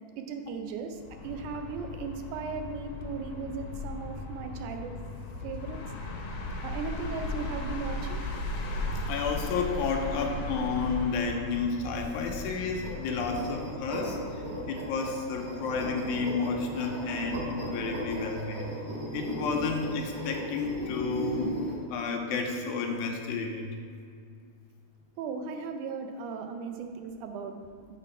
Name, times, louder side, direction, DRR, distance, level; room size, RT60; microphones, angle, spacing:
voice 1, 0.2-5.0 5.4-5.8 6.6-8.2 25.2-28.0, right 5 dB, 90° right, 5 dB, 2.1 m, -37 dB
sound 1, 0.9-13.6, left 2 dB, 70° left, 1.8 m, -37 dB
voice 2, 9.1-14.2 14.7-18.7 19.1-21.5 21.9-23.7, left 4 dB, 85° left, 3 dB, 2.1 m, -31 dB
sound 2, 12.8-21.7, equal, 55° right, 2.4 m, -37 dB
5.8 x 4.0 x 5.7 m, 2.3 s
omnidirectional pair, 3.4 m